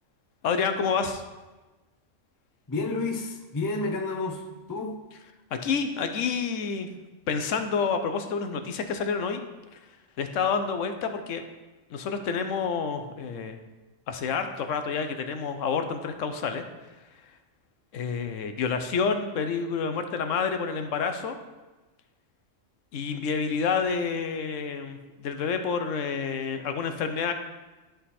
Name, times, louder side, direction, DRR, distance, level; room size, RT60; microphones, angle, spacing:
voice 1, 0.4-1.2 5.5-6.9 7.3-9.4 10.2-11.4 11.9-13.6 14.1-16.6 17.9-21.4 22.9-27.3, left 5 dB, 75° left, 7 dB, 1.1 m, -28 dB
voice 2, 2.7-5.0, left 3 dB, 25° left, 4 dB, 0.5 m, -30 dB
11.5 x 3.8 x 4.2 m, 1.2 s
omnidirectional pair, 1.3 m